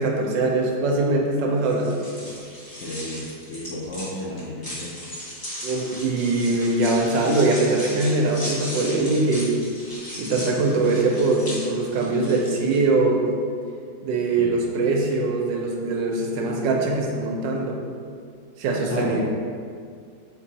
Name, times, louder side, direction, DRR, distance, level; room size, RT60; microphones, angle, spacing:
voice 1, 0.0-1.9 5.6-9.6 10.2-13.3 14.0-17.8 18.6-19.2, right 2 dB, 80° right, 0 dB, 1.3 m, -22 dB
sound 1, 1.6-12.8, equal, 35° left, 0.3 m, -37 dB
voice 2, 2.8-5.0 14.4-14.6 18.9-19.2, equal, 75° left, -7 dB, 0.6 m, -32 dB
4.4 x 2.6 x 4.0 m, 2.2 s
omnidirectional pair, 2.0 m